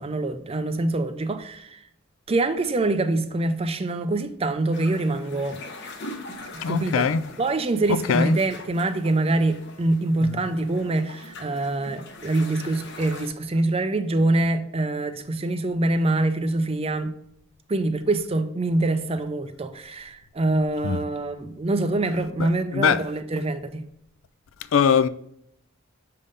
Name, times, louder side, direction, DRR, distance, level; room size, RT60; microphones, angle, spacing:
voice 1, 0.0-1.8 2.3-5.6 6.5-7.1 7.4-17.1 17.7-23.8, right 2 dB, 30° right, 0.5 m, -25 dB
sound 1, 4.7-13.3, left 2 dB, 55° left, 0.9 m, -42 dB
voice 2, 6.6-7.2 8.1-8.4 10.2-10.4 20.8-21.0 22.7-23.0 24.7-25.1, left 6 dB, 75° left, 0.4 m, -21 dB
6.6 x 3.7 x 5.3 m
head